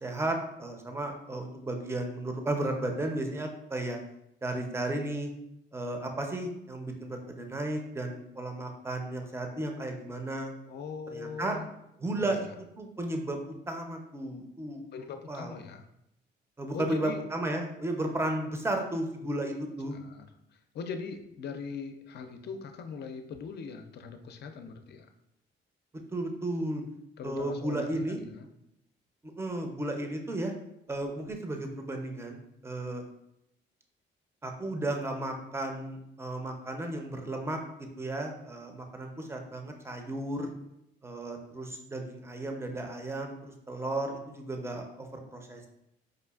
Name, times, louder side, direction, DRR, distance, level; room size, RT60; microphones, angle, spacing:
voice 1, 0.0-4.0 4.4-5.3 5.7-10.5 11.1-11.6 12.0-12.5 12.8-14.8 15.3-15.5 16.6-20.0 26.1-26.8 27.2-28.2 29.4-30.5 30.9-33.0 34.4-37.6 38.0-40.5 41.0-43.3 43.7-45.7, right 1 dB, 15° right, 4 dB, 0.5 m, -34 dB
voice 2, 10.7-11.7 12.2-12.5 14.9-15.9 16.7-17.2 19.9-20.3 20.7-25.1 27.2-28.5, left 5 dB, 55° left, 7 dB, 0.5 m, -41 dB
4.9 x 2.4 x 2.3 m, 0.82 s
cardioid pair, 90°, 20 cm